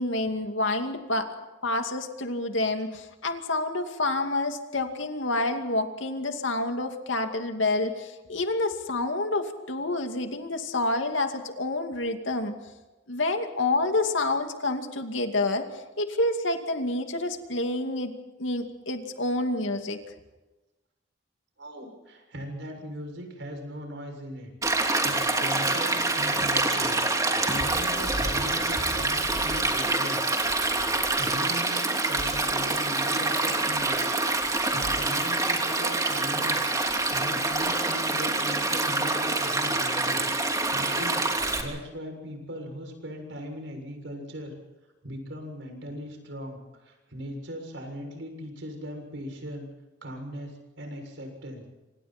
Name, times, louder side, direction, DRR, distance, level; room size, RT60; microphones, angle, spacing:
voice 1, 0.0-1.3 1.6-12.6 13.1-18.1 18.4-20.0, left 2 dB, 75° left, 5 dB, 2.5 m, -28 dB
voice 2, 21.6-24.5 24.8-30.2 31.1-34.0 34.3-36.6 37.1-41.2 41.6-44.5 45.0-49.7 50.0-51.7, equal, 65° right, 4 dB, 7.0 m, -39 dB
Stream, 24.6-41.6, right 2 dB, 20° right, 3.1 m, -26 dB
27.0 x 26.0 x 4.5 m, 1.1 s
head